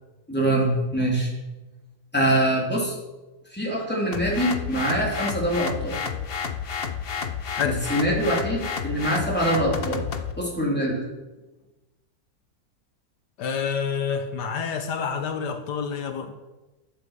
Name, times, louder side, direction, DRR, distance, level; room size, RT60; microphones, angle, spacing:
voice 1, 0.3-1.3 2.1-2.9 3.5-6.0 7.6-10.1 10.4-11.0, right 1 dB, 5° left, -3 dB, 3.5 m, -24 dB
sound 1, 4.1-10.3, left 6 dB, 45° left, 0.8 m, -30 dB
voice 2, 13.4-16.3, left 6 dB, 80° left, 8 dB, 1.6 m, -28 dB
10.5 x 8.6 x 7.5 m, 1.1 s
omnidirectional pair, 1.8 m